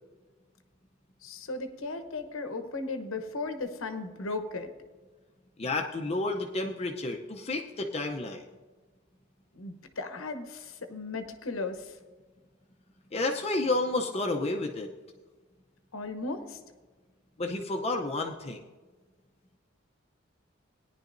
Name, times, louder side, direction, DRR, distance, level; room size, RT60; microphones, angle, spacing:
voice 1, 1.2-4.7 9.5-12.0 15.9-16.6, left 3 dB, 90° left, 8 dB, 1.0 m, -36 dB
voice 2, 5.6-8.5 13.1-14.9 17.4-18.6, left 2 dB, 30° left, 2 dB, 0.6 m, -30 dB
17.5 x 10.5 x 2.6 m, 1.3 s
head